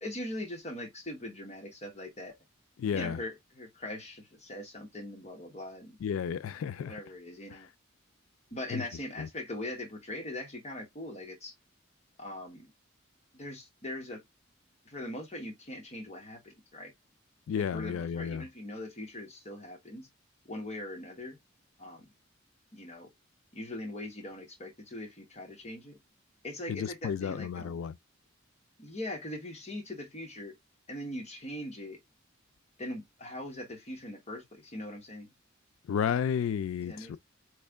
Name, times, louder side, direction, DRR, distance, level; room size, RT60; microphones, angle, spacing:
voice 1, 0.0-2.4 2.9-6.0 6.9-7.7 8.5-11.5 12.2-12.7 13.3-14.2 14.9-16.9 17.6-20.1 20.5-21.4 21.8-22.1 22.7-23.1 23.5-26.0 26.4-27.8 28.8-30.5 30.9-32.0 32.8-35.3 36.8-37.2, left 1 dB, 35° left, 1.0 m, -41 dB
voice 2, 2.8-3.2 6.0-7.0 7.5-7.7 8.7-8.8 9.2-9.3 17.5-18.4 26.7-28.0 35.9-37.2, left 7 dB, 85° left, 0.3 m, -32 dB
4.3 x 3.2 x 3.4 m
head